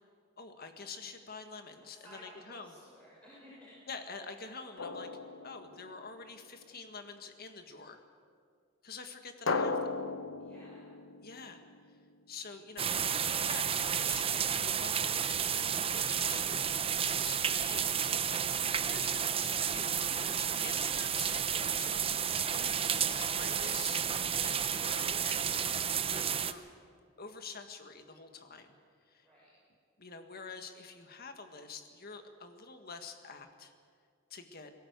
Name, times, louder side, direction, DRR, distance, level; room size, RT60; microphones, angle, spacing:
voice 1, 0.4-2.8 3.9-5.1 5.4-8.0 8.8-9.8 11.2-11.6 12.3-26.7 27.2-28.8 29.0-29.3 30.0-33.7 34.3-34.7, left 4 dB, 50° left, 7 dB, 1.7 m, -47 dB
voice 2, 1.6-3.7 10.4-10.8 29.2-29.5, left 1 dB, 5° left, -9 dB, 6.8 m, -55 dB
Drum, 4.8-6.3 9.5-12.2, left 3 dB, 75° left, 1.0 m, -37 dB
sound 1, 12.8-26.5, right 8 dB, 30° right, 0.7 m, -31 dB
21.0 x 17.5 x 8.2 m, 2.1 s
head